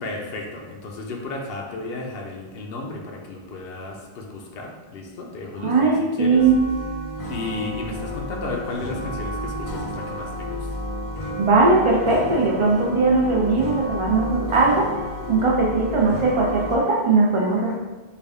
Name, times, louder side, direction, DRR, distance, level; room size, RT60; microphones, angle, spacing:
voice 1, 0.0-5.9 6.2-6.4 7.3-10.7, left 2 dB, 75° left, 1 dB, 0.8 m, -33 dB
voice 2, 5.6-6.5 11.4-17.8, right 3 dB, 40° right, -2 dB, 0.5 m, -19 dB
sound 1, 6.3-16.8, equal, 45° left, 0.5 m, -31 dB
3.5 x 2.3 x 3.4 m, 1.3 s
omnidirectional pair, 1.0 m